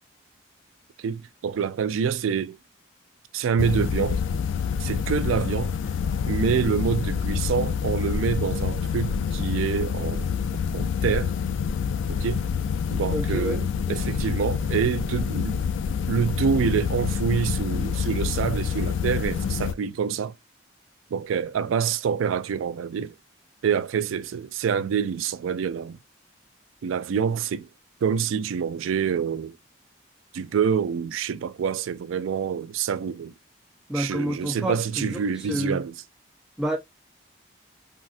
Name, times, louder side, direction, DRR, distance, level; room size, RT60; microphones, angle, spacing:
voice 1, 1.0-2.6 3.3-4.2 4.8-5.8 6.3-10.4 10.7-11.3 12.1-12.4 12.9-15.6 16.1-20.3 21.1-23.1 23.6-26.0 26.8-27.7 28.0-29.6 30.3-33.3 33.9-35.9, right 7 dB, 80° right, 0.3 m, -26 dB
sound 1, 3.6-19.7, left 6 dB, 70° left, 0.3 m, -27 dB
voice 2, 13.1-13.6 33.9-35.2 35.5-35.8 36.6-36.8, equal, 5° right, 0.4 m, -28 dB
3.7 x 2.1 x 2.4 m
head